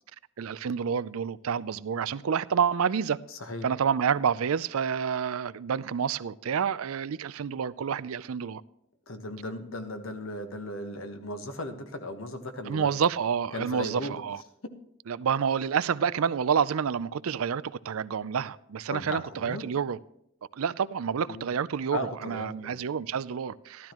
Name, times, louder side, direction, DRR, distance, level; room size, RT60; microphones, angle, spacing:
voice 1, 0.4-3.2 3.6-8.6 12.7-14.4 15.1-20.0 20.5-23.9, right 7 dB, 85° right, 0.4 m, -28 dB
voice 2, 3.3-3.7 9.1-12.9 13.5-14.2 18.9-19.6 21.3-21.4 21.9-22.8, left 1 dB, 75° left, 1.3 m, -36 dB
13.5 x 12.5 x 3.0 m
head